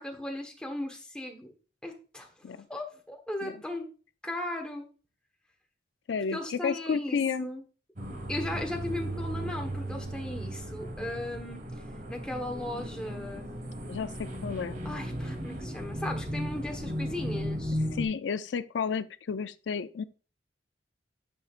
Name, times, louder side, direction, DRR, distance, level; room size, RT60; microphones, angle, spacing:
voice 1, 0.0-1.5 1.8-3.9 4.2-4.9 6.3-7.6 8.3-11.6 12.1-13.5 14.8-17.8, left 1 dB, 5° left, 1.2 m, -37 dB
voice 2, 6.1-7.5 13.9-14.8 17.9-20.0, left 6 dB, 90° left, 0.4 m, -31 dB
sound 1, 8.0-18.1, equal, 50° right, 1.7 m, -36 dB
9.2 x 5.5 x 2.5 m
head